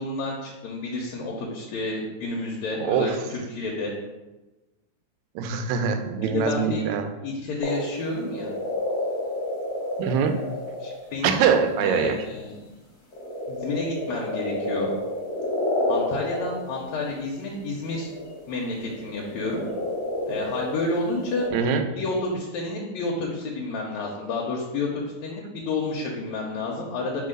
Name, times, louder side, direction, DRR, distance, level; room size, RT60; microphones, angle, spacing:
voice 1, 0.0-3.9 6.3-6.8 7.2-8.5 10.8-11.4 11.8-12.5 13.5-14.9 15.9-18.1 18.5-19.6 20.3-21.5 22.0-27.3, left 3 dB, 75° left, -2 dB, 2.0 m, -30 dB
voice 2, 2.8-3.2 5.4-7.1 10.0-10.4 11.2-12.3 21.5-21.8, right 6 dB, 80° right, 7 dB, 1.9 m, -23 dB
sound 1, 7.6-11.0 11.4-11.7 13.1-16.9 17.8-21.5, left 1 dB, 40° left, 1.5 m, -29 dB
4.7 x 4.5 x 5.0 m, 1.1 s
omnidirectional pair, 3.3 m